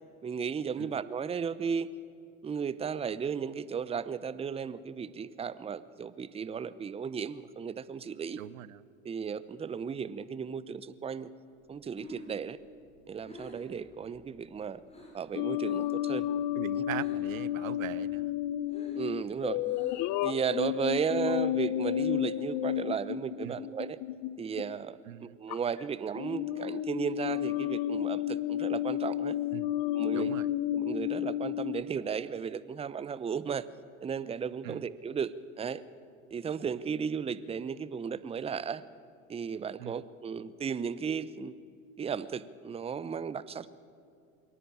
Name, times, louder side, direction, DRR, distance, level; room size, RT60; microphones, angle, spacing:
voice 1, 0.2-1.9 2.4-8.4 9.0-11.3 11.7-12.6 13.1-14.8 15.1-16.3 16.8-16.9 18.9-19.6 20.2-24.0 24.4-29.4 29.9-30.3 30.7-33.6 34.0-35.8 36.3-38.8 39.3-41.5 42.0-43.7, right 6 dB, 15° right, 16 dB, 0.7 m, -35 dB
voice 2, 8.4-8.9 16.5-18.3 23.4-23.6 25.1-25.4 29.5-29.7 30.1-30.5 34.6-34.8 39.8-40.0, right 14 dB, 80° right, 19 dB, 0.8 m, -41 dB
Breathing, 11.7-15.3 15.6-16.1 16.3-17.4 17.7-20.3, left 1 dB, 15° left, 6.8 m, -50 dB
sound 1, 15.3-24.7 25.5-25.8 26.2-31.8, left 12 dB, 45° left, 0.9 m, -32 dB
22.5 x 18.0 x 8.7 m, 2.4 s
hypercardioid pair, 90°, 40 cm